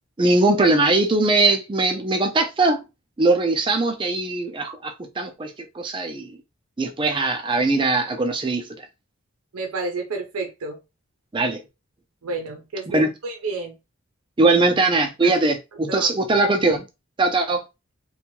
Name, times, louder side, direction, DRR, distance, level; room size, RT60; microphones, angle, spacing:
voice 1, 0.2-2.8 3.2-6.3 6.8-8.8 11.3-11.6 12.9-13.1 14.4-16.9 17.2-17.6, right 2 dB, 25° right, 0.4 m, -21 dB
voice 2, 9.5-10.8 12.2-13.8 15.2-15.4 15.9-16.1, right 3 dB, 85° right, 0.6 m, -30 dB
2.7 x 2.2 x 3.0 m
head